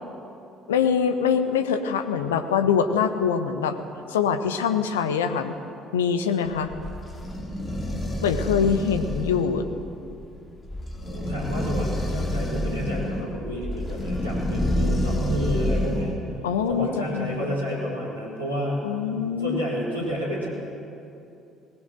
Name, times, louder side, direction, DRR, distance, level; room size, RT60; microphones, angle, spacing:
voice 1, 0.7-3.8 4.1-5.5 5.9-6.7 8.2-9.7 16.4-17.5 18.8-19.6, left 7 dB, 75° left, 9 dB, 1.1 m, -24 dB
sound 1, 6.4-16.2, left 1 dB, 30° left, 4.3 m, -28 dB
voice 2, 11.1-16.1 16.7-18.8 19.4-20.5, equal, 85° right, -6 dB, 4.7 m, -30 dB
19.5 x 19.5 x 7.8 m, 2.8 s
figure-of-eight pair, 50°, 0 cm